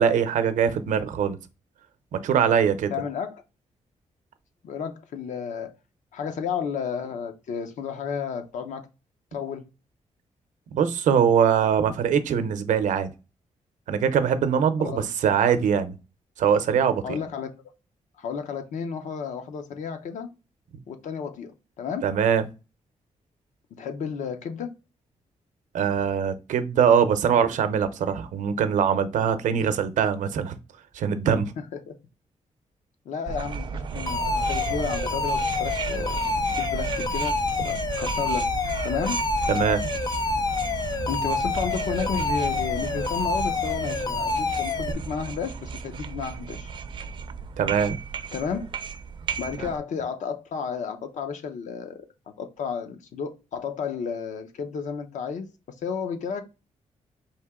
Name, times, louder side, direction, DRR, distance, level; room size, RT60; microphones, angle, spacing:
voice 1, 0.0-1.4 2.1-2.9 10.7-13.1 13.9-15.9 16.4-17.2 22.0-22.4 25.7-30.6 30.9-31.5 39.5-39.9 47.6-48.0, right 7 dB, 90° right, 0.6 m, -22 dB
voice 2, 2.9-3.4 4.6-5.8 6.1-8.9 9.3-9.6 14.8-15.1 17.0-17.5 18.2-20.3 20.9-22.1 23.8-24.8 31.6-31.9 33.1-36.2 36.5-37.4 37.6-38.5 38.8-39.2 41.1-46.7 48.3-48.7 49.4-52.1 52.4-55.5 55.8-56.4, left 6 dB, 80° left, 0.7 m, -32 dB
sound 1, 33.3-49.8, right 5 dB, 40° right, 0.4 m, -33 dB
Alarm, 34.1-44.9, left 4 dB, 30° left, 0.4 m, -28 dB
4.3 x 2.8 x 3.5 m
wide cardioid pair, 170°, 13 cm